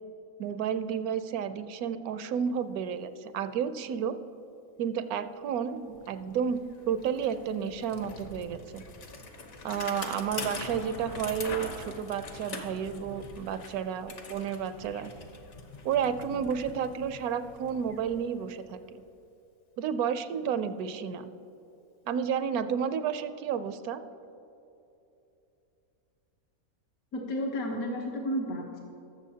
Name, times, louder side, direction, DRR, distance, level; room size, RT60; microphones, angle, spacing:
voice 1, 0.4-4.2 4.8-8.8 9.6-15.1 15.8-19.0 19.8-21.3 22.1-24.0, right 7 dB, 80° right, 11 dB, 1.1 m, -31 dB
Bicycle, 5.6-5.7 5.9-18.8, left 3 dB, 55° left, 1.3 m, -43 dB
voice 2, 27.1-28.8, equal, 70° left, -1 dB, 1.5 m, -32 dB
20.5 x 6.9 x 2.8 m, 2.8 s
omnidirectional pair, 1.6 m